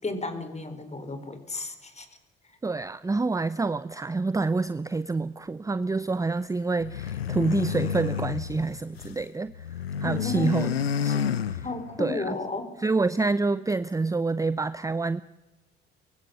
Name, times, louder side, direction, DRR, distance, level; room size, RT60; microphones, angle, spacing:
voice 1, 0.0-2.1 10.0-10.9 11.6-12.7, left 2 dB, 20° left, 9 dB, 4.6 m, -33 dB
voice 2, 2.6-9.7 10.0-10.7 11.0-11.6 12.0-12.3 12.8-15.2, right 3 dB, 10° right, 16 dB, 0.7 m, -27 dB
sound 1, 6.8-9.2 9.5-12.1, left 8 dB, 85° left, 0.7 m, -30 dB
24.0 x 23.0 x 7.1 m, 1.1 s
figure-of-eight pair, 55°, 30 cm